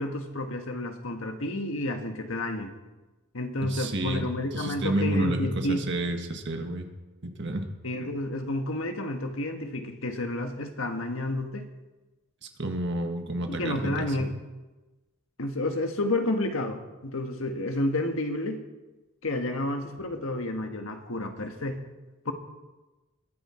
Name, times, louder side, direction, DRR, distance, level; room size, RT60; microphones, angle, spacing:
voice 1, 0.0-2.7 3.3-5.9 7.8-11.6 13.5-14.3 15.4-18.6 19.2-21.8 22.2-22.3, left 1 dB, 70° left, 5 dB, 1.6 m, -30 dB
voice 2, 3.6-4.2 4.5-6.9 7.2-7.6 12.6-14.1, right 1 dB, 55° right, 4 dB, 1.7 m, -30 dB
22.0 x 10.0 x 4.5 m, 1.1 s
head